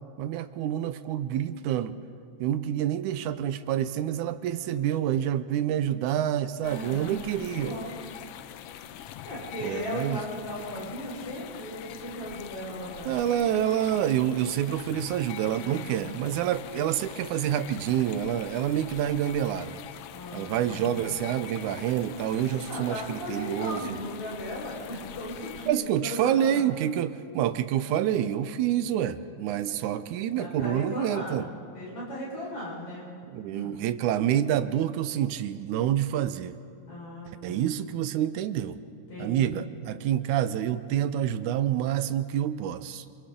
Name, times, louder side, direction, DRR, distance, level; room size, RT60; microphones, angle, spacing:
voice 1, 0.2-2.0 2.4-7.8 9.6-10.2 13.1-19.8 20.3-24.0 25.7-31.5 33.3-36.6 37.4-38.8 39.2-43.1, right 10 dB, 85° right, 12 dB, 2.1 m, -27 dB
sound 1, 6.6-25.7, left 11 dB, 85° left, 1.3 m, -43 dB
voice 2, 6.6-7.9 9.2-13.1 15.6-16.1 20.1-21.1 22.7-26.6 30.3-33.1 33.5-33.7 36.9-37.7 39.1-39.7, left 1 dB, 70° left, -6 dB, 6.3 m, -37 dB
27.5 x 26.5 x 3.8 m, 2.4 s
omnidirectional pair, 3.4 m